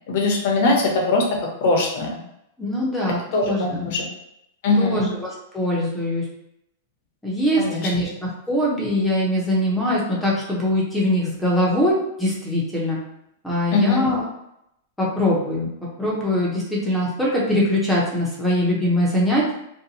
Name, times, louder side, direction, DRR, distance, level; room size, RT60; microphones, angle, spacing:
voice 1, 0.1-1.2 1.6-2.1 3.3-4.0 4.6-5.1 7.6-7.9 13.7-14.1, left 3 dB, 55° left, 0 dB, 0.7 m, -21 dB
voice 2, 2.6-4.0 4.8-6.2 7.2-13.0 13.4-14.2 15.0-15.7 16.0-19.6, left 1 dB, 5° left, -5 dB, 0.7 m, -22 dB
2.6 x 2.2 x 2.8 m, 0.79 s
supercardioid pair, 155°, 0 cm